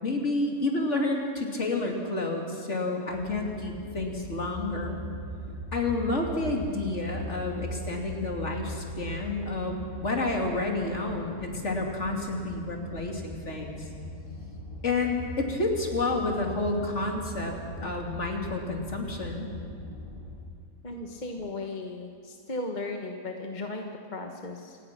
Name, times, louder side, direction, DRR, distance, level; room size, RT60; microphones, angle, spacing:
voice 1, 0.0-5.0 5.7-13.9 14.8-19.5, left 2 dB, 50° left, 1 dB, 3.0 m, -30 dB
sound 1, 3.1-20.3, equal, 60° right, 6.5 m, -40 dB
voice 2, 20.8-24.8, left 2 dB, 30° left, 3 dB, 1.4 m, -36 dB
27.5 x 18.5 x 6.1 m, 2.4 s
omnidirectional pair, 1.6 m